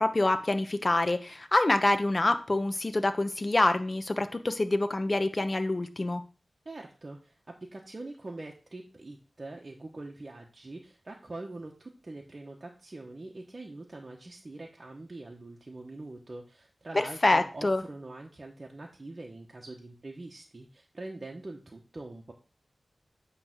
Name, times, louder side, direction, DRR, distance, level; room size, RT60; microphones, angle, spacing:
voice 1, 0.0-6.2 16.9-17.8, left 2 dB, 35° left, 9 dB, 0.9 m, -26 dB
voice 2, 6.6-22.3, right 2 dB, 40° right, 0 dB, 1.1 m, -44 dB
8.8 x 3.3 x 6.0 m, 0.37 s
wide cardioid pair, 75°, 0 cm